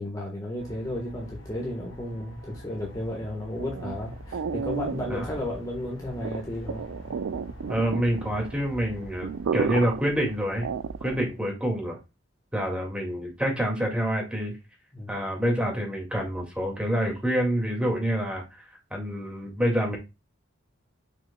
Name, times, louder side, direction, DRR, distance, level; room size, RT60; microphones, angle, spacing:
voice 1, 0.0-6.8 14.9-15.1, left 1 dB, 20° left, -2 dB, 1.4 m, -33 dB
sound 1, 0.6-10.8, left 1 dB, 70° left, 1.7 m, -45 dB
sound 2, 3.5-11.4, right 6 dB, 85° right, 0.4 m, -33 dB
voice 2, 7.7-10.7 11.0-12.0 12.5-14.6 15.1-20.0, equal, 5° right, 0 dB, 2.1 m, -27 dB
6.7 x 6.3 x 2.3 m, 0.25 s
head